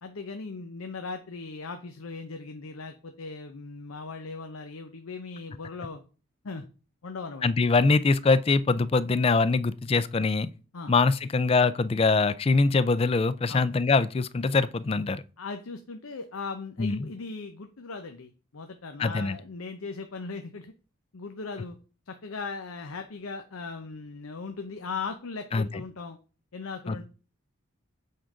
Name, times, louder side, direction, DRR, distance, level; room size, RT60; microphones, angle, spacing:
voice 1, 0.0-6.0 6.4-6.6 7.0-7.5 10.7-10.9 13.5-13.7 15.4-20.7 21.1-21.8 22.1-26.2 26.5-27.0, left 4 dB, 80° left, 0.7 m, -38 dB
voice 2, 7.4-10.5 10.9-15.2 16.8-17.1 19.0-19.4 25.5-25.8 26.9-27.0, left 4 dB, 25° left, 0.3 m, -23 dB
7.8 x 3.7 x 4.9 m
head